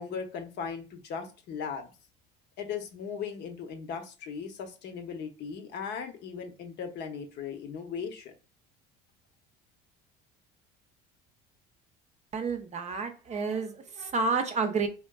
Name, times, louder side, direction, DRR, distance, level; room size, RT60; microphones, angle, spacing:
voice 1, 0.0-1.9 2.6-8.3, left 6 dB, 55° left, 5 dB, 0.8 m, -38 dB
voice 2, 12.3-14.9, right 4 dB, 35° right, 6 dB, 0.6 m, -30 dB
3.6 x 2.5 x 2.2 m, 0.33 s
supercardioid pair, 100°, 21 cm